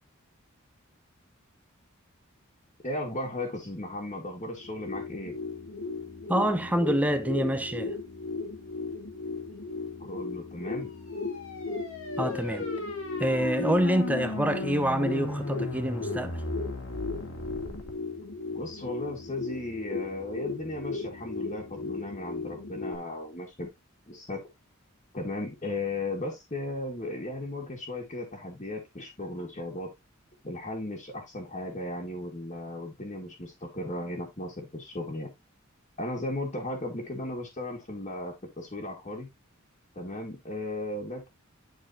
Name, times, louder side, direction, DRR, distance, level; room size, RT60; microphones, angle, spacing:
voice 1, 2.8-5.4 10.0-10.9 18.5-23.7 24.1-24.4 25.1-29.9 30.4-35.3 36.0-39.3 40.0-41.3, left 2 dB, 35° left, 1.8 m, -36 dB
sound 1, 4.6-23.0, left 4 dB, 65° left, 1.1 m, -36 dB
voice 2, 6.3-7.9 12.2-12.7 13.2-16.4, equal, 5° right, 0.7 m, -26 dB
sound 2, 11.0-17.9, left 1 dB, 80° left, 1.9 m, -36 dB
10.5 x 4.2 x 2.7 m
head